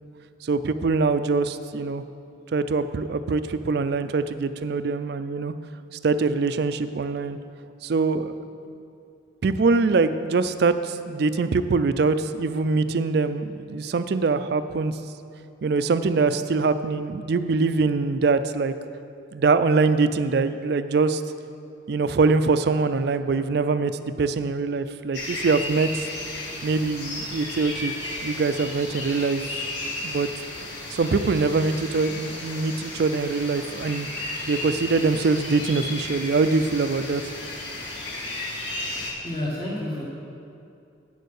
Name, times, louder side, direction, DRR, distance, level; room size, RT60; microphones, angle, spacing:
voice 1, 0.4-2.0 2.5-5.5 6.0-7.4 7.8-8.4 9.4-14.9 15.6-18.7 19.3-21.2 21.9-23.9 24.2-26.0 26.6-27.9 28.2-29.5 30.0-30.3 30.9-34.1 34.5-37.2, right 4 dB, 55° right, 11 dB, 0.4 m, -23 dB
sound 1, 25.1-39.1, left 2 dB, 60° left, 2.0 m, -34 dB
voice 2, 38.9-40.0, left 1 dB, 25° left, -8 dB, 1.3 m, -30 dB
8.5 x 6.7 x 6.5 m, 2.5 s
head